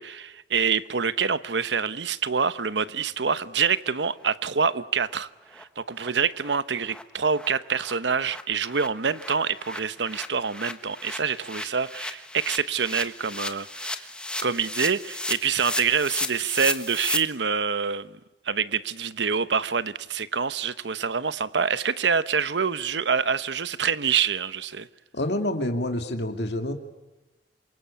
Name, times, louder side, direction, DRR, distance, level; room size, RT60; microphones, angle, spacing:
voice 1, 0.0-14.1 14.4-18.1 18.4-24.9, right 6 dB, 90° right, 1.0 m, -26 dB
sound 1, 4.2-4.3 4.6-4.7 5.1-5.2 5.5-5.6 6.0-6.1 6.4-6.6 6.9-7.0 7.3-17.2, left 2 dB, 5° left, 1.4 m, -35 dB
voice 2, 25.1-26.7, left 1 dB, 75° left, 2.5 m, -27 dB
27.5 x 24.0 x 8.6 m
head